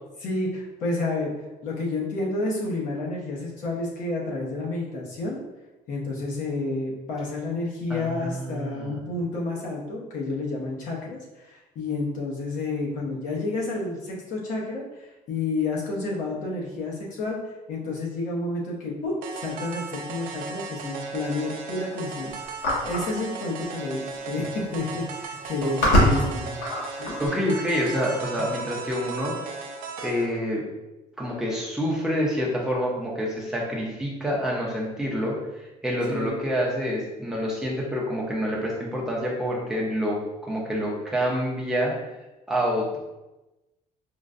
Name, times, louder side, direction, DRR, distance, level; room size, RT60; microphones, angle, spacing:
voice 1, 0.2-1.3 1.6-5.4 5.9-22.3 22.8-26.3 27.0-27.2 36.1-36.4, left 2 dB, 60° left, -3 dB, 0.9 m, -30 dB
voice 2, 7.9-9.0 25.9-26.5 27.0-29.4 30.0-30.7 31.2-41.9 42.5-43.0, equal, 5° right, -4 dB, 0.6 m, -27 dB
sound 1, 19.2-30.3, right 4 dB, 70° right, 0.5 m, -36 dB
sound 2, 22.6-23.1 24.1-24.2 24.5-24.8 25.4-27.3, equal, 75° left, 1.1 m, -22 dB
5.0 x 2.2 x 2.5 m, 1.0 s
cardioid pair, 175°, 15 cm